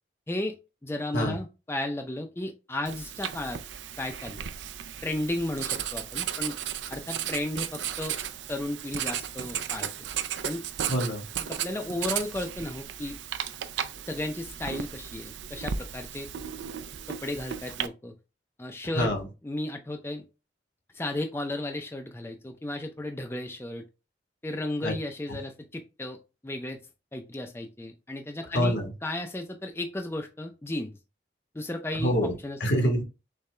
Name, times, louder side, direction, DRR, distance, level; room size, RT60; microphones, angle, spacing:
voice 1, 0.8-3.6 4.0-4.4 5.0-6.5 6.9-8.2 8.5-9.9 10.4-10.6 11.5-13.2 14.1-16.3 17.2-18.1 18.6-19.1 19.4-20.2 20.9-23.8 24.4-26.2 26.4-26.8 27.1-28.8 29.0-31.0 31.5-32.8, left 1 dB, 15° left, 0.4 m, -34 dB
Writing, 2.9-17.9, right 9 dB, 90° right, 0.4 m, -35 dB
voice 2, 10.9-11.2 18.9-19.2 24.8-24.9 28.5-28.9 32.0-32.3 32.6-33.0, equal, 75° left, 1.3 m, -25 dB
6.5 x 2.3 x 3.2 m
head